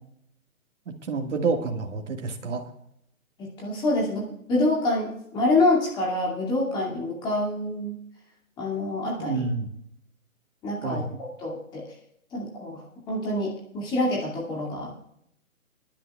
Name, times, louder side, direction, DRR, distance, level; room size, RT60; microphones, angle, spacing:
voice 1, 0.9-2.6 9.2-9.7 10.8-11.2, right 4 dB, 55° right, 3 dB, 2.0 m, -28 dB
voice 2, 3.4-8.0 8.6-9.4 10.6-11.0 11.4-11.8 12.3-12.8 13.1-14.9, left 2 dB, 10° left, -3 dB, 2.3 m, -26 dB
23.0 x 11.0 x 2.4 m, 0.73 s
hypercardioid pair, 155°, 43 cm